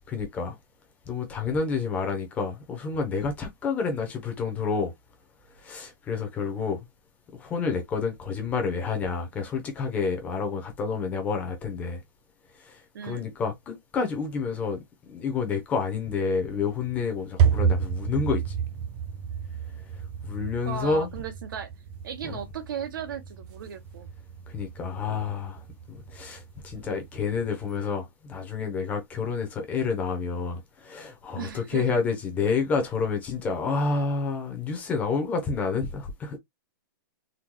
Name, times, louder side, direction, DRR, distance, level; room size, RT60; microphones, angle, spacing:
voice 1, 0.1-0.6 1.1-4.9 5.5-6.9 7.3-12.0 12.6-14.8 15.1-18.5 20.2-21.1 22.3-22.4 24.5-36.4, left 5 dB, 15° left, 0.7 m, -29 dB
voice 2, 12.9-13.3 20.6-21.7 22.0-24.1 31.3-32.0, right 8 dB, 70° right, 1.0 m, -36 dB
sound 1, 16.5-27.9, right 7 dB, 25° right, 0.4 m, -31 dB
3.7 x 2.2 x 3.0 m
hypercardioid pair, 170°, 12 cm